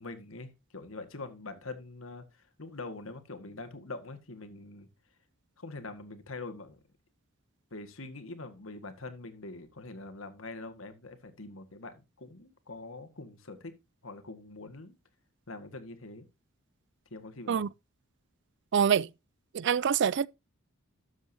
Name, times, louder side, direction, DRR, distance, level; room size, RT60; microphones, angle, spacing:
voice 1, 0.0-2.3 2.6-4.9 5.6-6.8 7.7-13.7 14.0-15.0 15.5-16.3 17.1-17.7, left 3 dB, 70° left, 1.8 m, -44 dB
voice 2, 18.7-19.1 19.5-20.3, right 7 dB, 55° right, 0.4 m, -25 dB
13.0 x 7.2 x 2.8 m
head